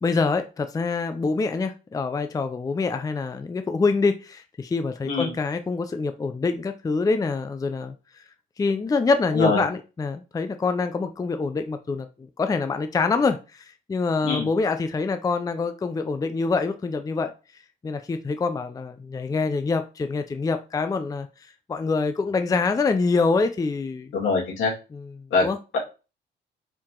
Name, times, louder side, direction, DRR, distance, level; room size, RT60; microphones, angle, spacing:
voice 1, 0.0-8.2 8.6-17.3 17.8-21.3 21.7-24.2 24.9-25.6, left 4 dB, 20° left, 9 dB, 0.4 m, -25 dB
voice 2, 24.1-24.7 25.3-25.5, left 4 dB, 80° left, -3 dB, 2.0 m, -23 dB
4.6 x 2.8 x 3.7 m, 0.31 s
cardioid pair, 90°, 20 cm